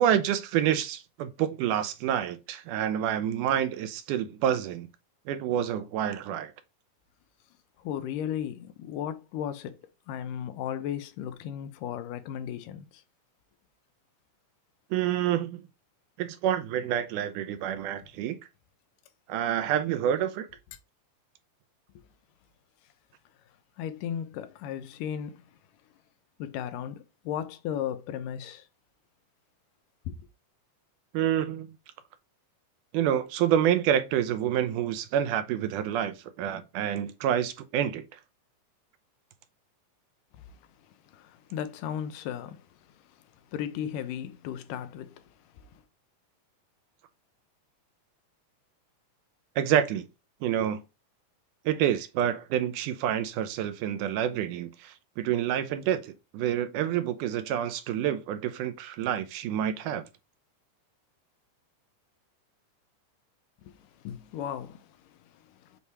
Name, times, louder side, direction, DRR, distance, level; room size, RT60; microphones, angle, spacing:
voice 1, 0.0-4.9 5.3-6.5 14.9-15.6 16.2-18.4 19.3-20.5 31.1-31.7 32.9-38.2 49.6-50.1 50.4-50.8 51.7-60.0, right 10 dB, 80° right, 2.2 m, -28 dB
voice 2, 7.8-9.8 10.1-12.8 22.0-22.1 23.8-25.4 26.4-28.6 30.1-30.2 41.1-42.6 43.5-45.2 64.0-64.8, left 9 dB, 90° left, 2.3 m, -35 dB
7.0 x 2.8 x 4.7 m
omnidirectional pair, 3.7 m